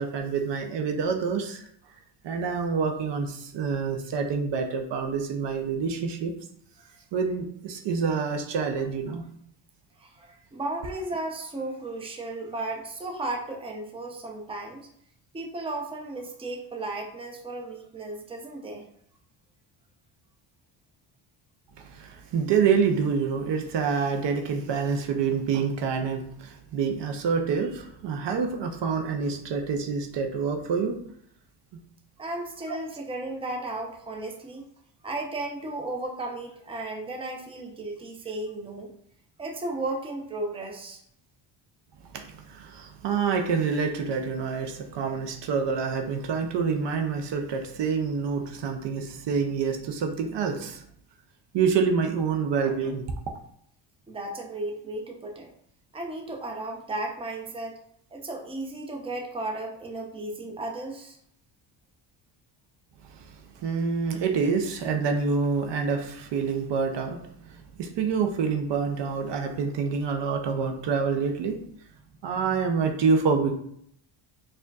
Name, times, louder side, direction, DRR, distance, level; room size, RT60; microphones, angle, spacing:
voice 1, 0.0-1.6 2.2-6.3 7.1-9.2 21.8-31.0 42.1-50.8 51.5-53.1 63.1-67.2 67.5-71.6 72.2-73.6, right 5 dB, 55° right, 4 dB, 0.7 m, -27 dB
voice 2, 10.0-14.9 15.3-18.9 32.2-34.6 35.0-38.9 39.4-41.0 54.1-55.5 55.9-57.8 58.1-61.2, right 2 dB, 10° right, 1 dB, 0.6 m, -34 dB
4.3 x 2.5 x 2.3 m, 0.68 s
cardioid pair, 80°, 50 cm